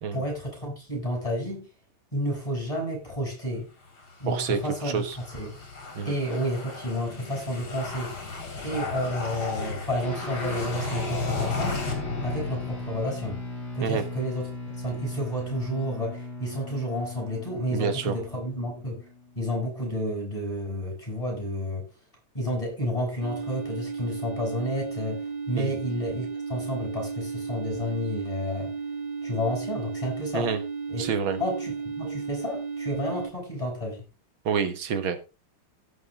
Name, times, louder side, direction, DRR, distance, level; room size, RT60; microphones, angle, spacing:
voice 1, 0.1-1.7 2.1-3.7 4.2-5.0 5.3-5.6 6.0-8.3 8.6-11.8 12.2-13.4 13.7-14.5 14.8-19.0 19.4-21.9 22.3-25.2 25.5-28.7 29.2-30.5 30.9-31.0 31.4-34.0, equal, 15° left, 7.5 m, -31 dB
sound 1, 3.8-13.2, left 3 dB, 75° left, 4.3 m, -34 dB
voice 2, 4.3-5.2 5.9-6.1 13.8-14.1 17.7-18.2 25.6-25.7 30.3-30.6 31.0-31.4 34.5-35.2, right 6 dB, 75° right, 2.2 m, -28 dB
sound 2, 10.0-19.7, left 1 dB, 50° left, 5.4 m, -38 dB
sound 3, 23.2-33.3, right 5 dB, 55° right, 2.6 m, -34 dB
17.0 x 6.7 x 3.7 m
omnidirectional pair, 2.3 m